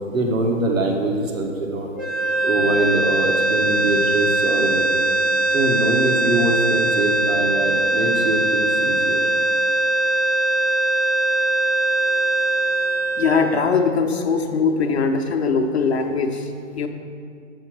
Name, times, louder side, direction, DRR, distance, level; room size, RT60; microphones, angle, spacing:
voice 1, 0.1-1.9 2.4-5.1 5.5-9.2, right 1 dB, 85° right, 1 dB, 1.4 m, -23 dB
sound 1, 2.0-14.2, right 2 dB, 15° right, 0.5 m, -21 dB
voice 2, 13.2-16.9, left 5 dB, 55° left, 3 dB, 0.8 m, -21 dB
6.9 x 6.3 x 6.1 m, 2.3 s
figure-of-eight pair, 145°, 39 cm